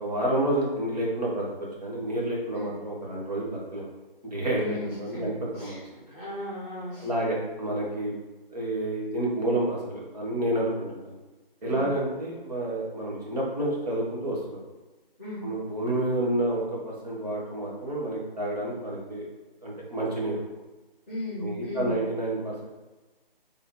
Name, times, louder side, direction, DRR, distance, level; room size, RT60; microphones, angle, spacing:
voice 1, 0.0-1.4 1.8-3.8 4.2-5.3 5.6-5.8 7.0-8.1 8.5-11.2 11.6-14.6 15.4-19.2 19.6-20.4 21.4-22.7, right 1 dB, 45° right, -4 dB, 1.2 m, -29 dB
voice 2, 4.5-5.8 6.1-7.1 11.6-11.9 15.2-15.5 21.1-22.0, left 1 dB, 10° right, -19 dB, 1.1 m, -36 dB
3.6 x 2.9 x 3.5 m, 1.2 s
figure-of-eight pair, 155°, 29 cm